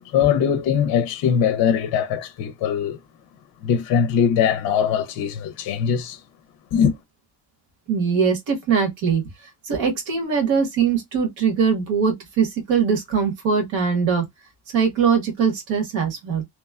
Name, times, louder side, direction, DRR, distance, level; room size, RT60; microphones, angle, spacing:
voice 1, 0.0-3.0 3.6-6.2 6.7-6.9, left 8 dB, 55° left, 0.5 m, -21 dB
voice 2, 7.9-9.2 9.7-14.2 14.7-16.4, right 6 dB, 75° right, 1.4 m, -21 dB
3.0 x 2.1 x 2.3 m
cardioid pair, 180°, 45 cm